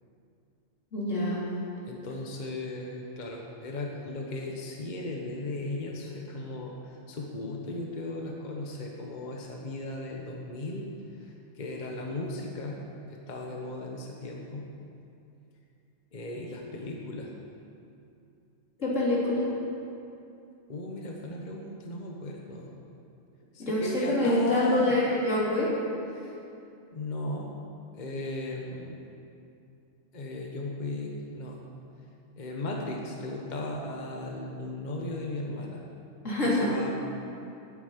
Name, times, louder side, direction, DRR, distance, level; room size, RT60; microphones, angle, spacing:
voice 1, 0.9-1.4 18.8-19.5 23.6-25.7 36.2-36.7, left 1 dB, 85° left, -7 dB, 3.7 m, -26 dB
voice 2, 1.9-10.9 11.2-12.8 13.1-14.7 16.1-17.3 20.7-22.7 23.5-25.0 26.1-26.4 26.9-27.5 27.9-29.0 30.1-31.6 32.4-35.8 36.4-36.9, left 2 dB, 40° left, -1 dB, 1.3 m, -36 dB
9.4 x 8.6 x 9.2 m, 2.6 s
omnidirectional pair, 1.3 m